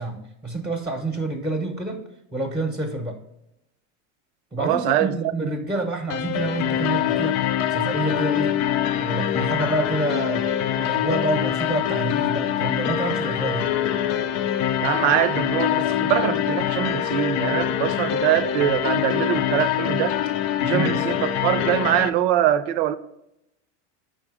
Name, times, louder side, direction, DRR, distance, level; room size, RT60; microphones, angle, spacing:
voice 1, 0.0-2.0 2.3-3.2 4.5-8.6 9.0-13.7 20.6-21.0, right 1 dB, 5° right, 0.8 m, -28 dB
voice 2, 4.6-5.1 14.8-20.1 20.7-23.0, right 11 dB, 75° right, 0.6 m, -23 dB
sound 1, 6.1-22.1, left 10 dB, 60° left, 0.5 m, -24 dB
5.5 x 3.8 x 4.8 m
supercardioid pair, 115°, 36 cm